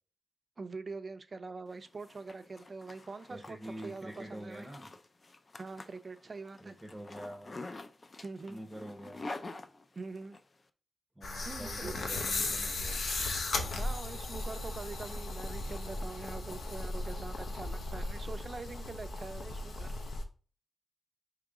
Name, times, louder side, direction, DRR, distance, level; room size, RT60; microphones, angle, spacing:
voice 1, 0.6-4.7 5.6-6.8 8.2-8.6 9.9-10.4 11.4-11.9 13.7-19.9, right 3 dB, 40° right, 10 dB, 0.4 m, -44 dB
Zipper (clothing), 1.7-10.4, left 2 dB, 35° left, 0.4 m, -47 dB
voice 2, 3.3-4.9 6.6-7.6 8.5-9.3 11.2-13.0, right 1 dB, 10° right, 2 dB, 0.7 m, -46 dB
sound 1, 11.2-20.2, left 2 dB, 65° left, 0.7 m, -36 dB
4.8 x 3.0 x 3.7 m, 0.37 s
wide cardioid pair, 110°, 0 cm